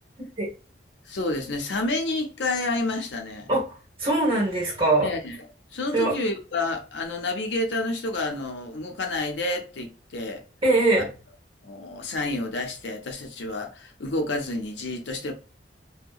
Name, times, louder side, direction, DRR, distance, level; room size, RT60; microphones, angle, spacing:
voice 1, 1.1-3.5 5.0-10.4 10.9-11.0 11.6-15.3, left 2 dB, 75° left, 0.6 m, -29 dB
voice 2, 4.0-5.1 5.9-6.1 10.6-11.1, right 2 dB, 30° right, 1.1 m, -21 dB
2.7 x 2.1 x 2.3 m
head